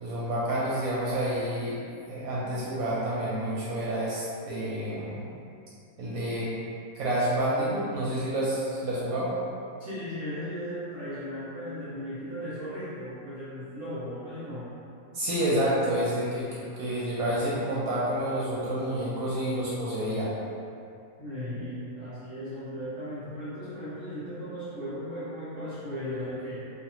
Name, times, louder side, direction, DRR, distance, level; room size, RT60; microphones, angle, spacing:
voice 1, 0.0-1.8 2.1-5.3 6.0-6.5 7.0-9.3 15.1-20.3, right 1 dB, 70° right, -7 dB, 0.9 m, -29 dB
voice 2, 9.8-14.7 21.2-26.6, equal, 50° right, -12 dB, 0.4 m, -36 dB
3.3 x 2.2 x 2.9 m, 2.5 s
omnidirectional pair, 1.7 m